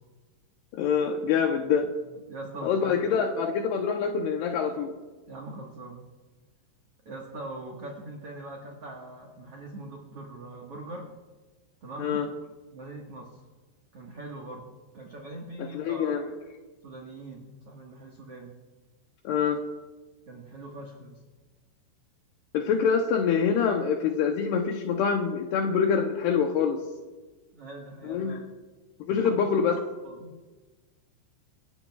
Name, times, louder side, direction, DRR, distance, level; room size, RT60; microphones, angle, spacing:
voice 1, 0.8-1.9 2.6-4.9 12.0-12.3 15.7-16.3 19.2-19.6 22.5-26.8 28.0-28.4 29.1-29.8, left 6 dB, 75° left, 3 dB, 2.5 m, -25 dB
voice 2, 2.3-2.9 5.3-6.1 7.0-11.1 11.8-12.2 12.7-13.4 13.9-16.2 16.8-18.6 20.3-21.2 27.5-28.4 29.2-29.8 30.0-30.3, right 2 dB, 75° right, -1 dB, 1.3 m, -42 dB
26.5 x 14.0 x 2.4 m, 1.3 s
omnidirectional pair, 5.3 m